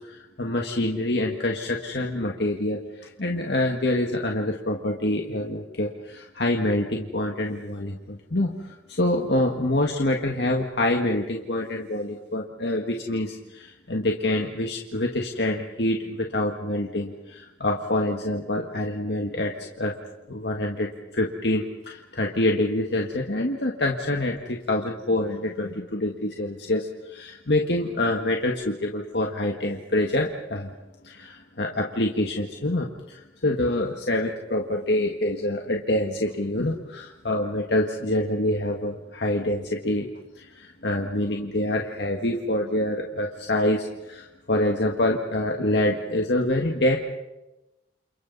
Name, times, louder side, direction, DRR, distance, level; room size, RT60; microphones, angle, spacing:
voice 1, 0.4-2.8 3.2-8.5 9.0-19.5 19.8-19.9 20.3-20.9 21.1-26.9 27.1-30.7 31.1-32.9 33.4-40.1 40.8-47.0, left 1 dB, 65° left, 1 dB, 1.7 m, -26 dB
29.5 x 29.0 x 4.1 m, 1.0 s
head